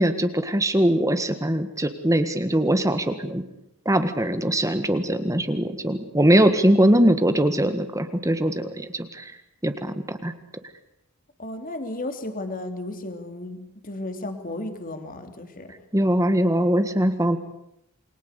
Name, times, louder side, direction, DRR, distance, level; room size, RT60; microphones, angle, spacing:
voice 1, 0.0-3.4 3.9-9.3 9.6-10.3 15.9-17.4, right 1 dB, 15° right, 9 dB, 1.7 m, -21 dB
voice 2, 11.4-15.7, left 2 dB, 40° left, 7 dB, 3.0 m, -34 dB
28.5 x 22.0 x 8.3 m, 0.82 s
head